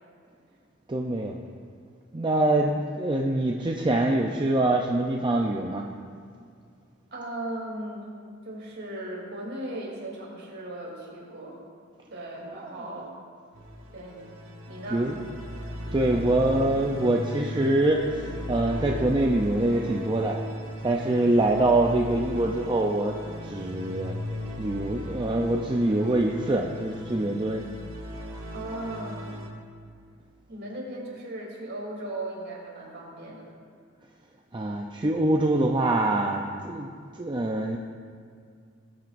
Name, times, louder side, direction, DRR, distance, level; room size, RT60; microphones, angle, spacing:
voice 1, 0.9-1.4 2.1-5.9 14.9-15.1 15.9-20.4 20.8-23.2 23.4-24.2 24.6-27.6 34.5-36.9 37.2-37.8, right 1 dB, 20° right, 0 dB, 0.5 m, -24 dB
voice 2, 7.1-8.1 8.4-11.6 12.1-13.2 13.9-14.2 14.7-15.1 28.5-29.3 30.5-33.5, right 1 dB, 50° right, -3 dB, 3.1 m, -37 dB
sound 1, 13.5-29.5, left 1 dB, 85° right, 1.8 m, -37 dB
19.0 x 9.0 x 2.6 m, 2.2 s
head